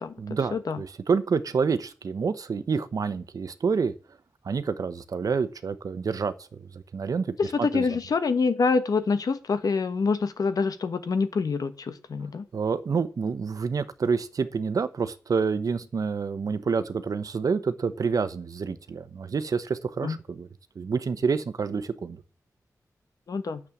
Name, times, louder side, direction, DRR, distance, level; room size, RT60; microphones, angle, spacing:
voice 1, 0.2-3.9 4.4-8.0 12.5-20.5 20.8-22.2, right 5 dB, 65° right, 12 dB, 1.0 m, -28 dB
voice 2, 7.4-12.5 20.0-20.2 23.3-23.6, left 4 dB, 70° left, 10 dB, 1.2 m, -26 dB
9.8 x 7.5 x 7.3 m, 0.36 s
wide cardioid pair, 140°, 7 cm